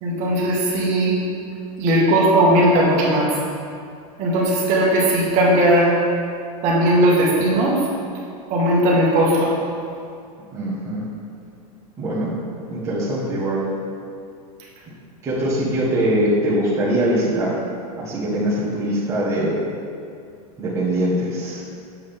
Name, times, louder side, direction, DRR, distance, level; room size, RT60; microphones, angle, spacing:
voice 1, 0.0-1.2 1.8-3.3 4.2-5.9 6.6-7.8 8.5-9.5, right 1 dB, 35° right, -4 dB, 1.5 m, -17 dB
voice 2, 10.5-11.0 12.0-12.3 12.7-13.6 15.2-17.6 18.0-19.6 20.6-21.6, right 1 dB, 15° right, -9 dB, 1.3 m, -22 dB
7.5 x 7.1 x 3.6 m, 2.3 s
supercardioid pair, 160°, 20 cm